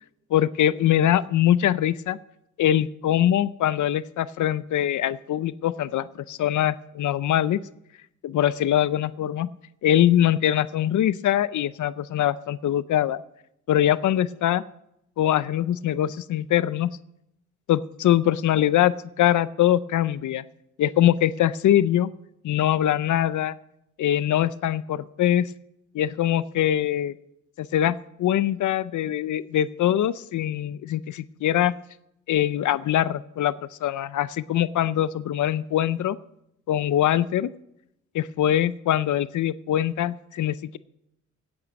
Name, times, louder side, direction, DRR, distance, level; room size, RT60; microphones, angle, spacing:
voice 1, 0.3-2.2 2.6-7.6 8.2-9.5 9.8-13.2 13.7-14.6 15.2-16.9 17.7-20.4 20.8-22.1 22.4-23.5 24.0-25.5 25.9-27.2 27.6-31.7 32.3-33.5 33.8-36.2 36.7-37.5 38.1-40.8, left 11 dB, 80° left, 17 dB, 0.5 m, -23 dB
17.0 x 8.9 x 5.2 m, 0.80 s
cardioid pair, 120°, 30 cm